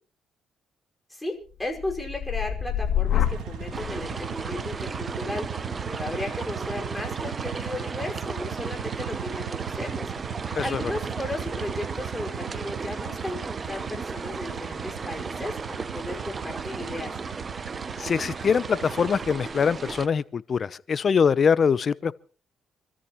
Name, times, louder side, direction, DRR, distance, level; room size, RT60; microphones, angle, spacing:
voice 1, 1.1-5.5 5.9-10.1 10.6-17.1, left 1 dB, 5° left, 5.3 m, -35 dB
sound 1, 1.5-9.5 10.0-10.4, left 10 dB, 70° left, 2.3 m, -32 dB
sound 2, 3.1-19.8, right 9 dB, 80° right, 1.4 m, -37 dB
sound 3, 3.7-20.1, right 4 dB, 35° right, 0.7 m, -35 dB
voice 2, 18.0-22.1, left 6 dB, 45° left, 0.7 m, -23 dB
27.0 x 13.5 x 3.1 m
cardioid pair, 90°, 0 cm